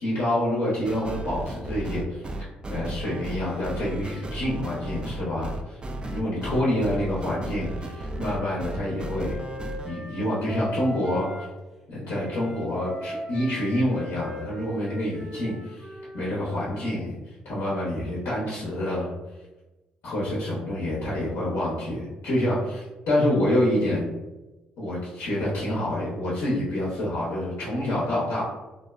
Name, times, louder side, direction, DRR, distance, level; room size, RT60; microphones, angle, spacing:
voice 1, 0.0-2.3 2.7-5.8 6.0-9.4 9.8-11.5 11.9-15.9 16.1-19.1 20.0-24.1 24.8-28.4, left 1 dB, 65° left, -6 dB, 0.7 m, -27 dB
sound 1, 0.8-9.9, right 1 dB, 25° right, 0.3 m, -34 dB
Wind instrument woodwind instrument, 6.9-11.5 12.1-16.9, left 1 dB, 5° right, 0.7 m, -40 dB
2.5 x 2.1 x 2.3 m, 1.1 s
hypercardioid pair, 50°, 4 cm